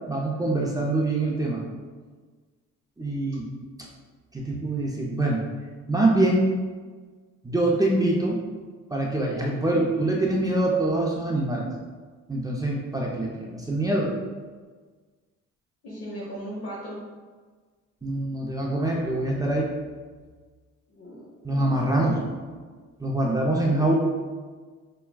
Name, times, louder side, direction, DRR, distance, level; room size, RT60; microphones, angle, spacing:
voice 1, 0.1-1.6 3.0-3.5 4.3-5.4 5.9-6.5 7.4-8.4 8.9-11.7 12.3-14.1 18.0-19.7 21.4-22.2 23.0-23.9, right 2 dB, 10° right, -3 dB, 0.5 m, -24 dB
voice 2, 15.8-17.0 20.9-21.6 21.9-22.6, equal, 50° left, -4 dB, 1.0 m, -38 dB
5.7 x 2.2 x 2.3 m, 1.4 s
cardioid pair, 90°, 30 cm